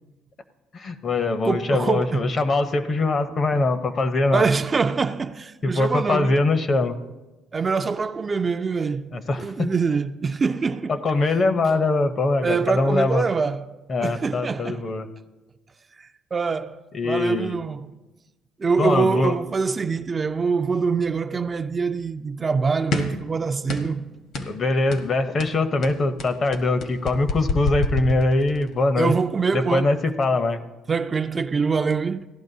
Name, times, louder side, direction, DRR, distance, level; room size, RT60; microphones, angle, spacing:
voice 1, 0.7-4.5 5.6-7.0 9.1-9.7 10.9-13.3 13.9-15.1 16.9-17.6 18.8-19.3 24.4-29.1 29.5-30.6, left 2 dB, 35° left, 0.7 m, -22 dB
voice 2, 1.4-2.3 4.3-6.4 7.5-10.9 12.4-13.7 14.0-14.8 16.0-17.9 18.6-24.1 29.0-30.0 30.9-32.3, right 5 dB, 30° right, 0.3 m, -24 dB
sound 1, 22.9-23.2 23.7-24.0 24.3-24.6 24.9-25.1 25.4-28.7, left 3 dB, 65° left, 1.2 m, -28 dB
16.5 x 11.5 x 2.7 m
cardioid pair, 120°, 0 cm